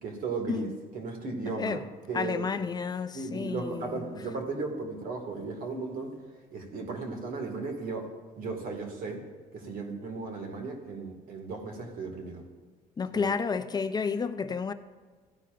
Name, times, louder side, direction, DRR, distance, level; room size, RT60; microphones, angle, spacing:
voice 1, 0.0-0.7 0.9-1.8 2.1-2.5 3.1-6.2 6.5-8.1 8.4-9.2 9.5-12.4 13.2-13.3, right 4 dB, 60° right, 2.1 m, -36 dB
voice 2, 2.1-4.1 13.0-14.7, left 5 dB, 25° left, 0.6 m, -31 dB
16.0 x 9.9 x 2.6 m
cardioid pair, 110°, 17 cm